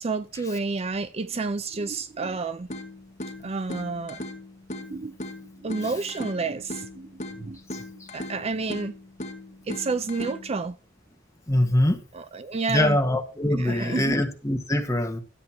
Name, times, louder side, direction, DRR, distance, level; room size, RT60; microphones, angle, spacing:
voice 1, 0.0-2.7 3.4-4.2 4.9-5.1 5.6-7.1 7.4-7.6 8.1-8.9 9.7-10.8 12.1-13.0 13.5-14.2, right 4 dB, 35° right, 0.4 m, -30 dB
sound 1, 2.7-10.7, left 1 dB, 40° left, 2.0 m, -39 dB
voice 2, 11.5-12.0 12.7-15.2, left 1 dB, 15° left, 1.7 m, -23 dB
13.0 x 8.2 x 4.4 m
head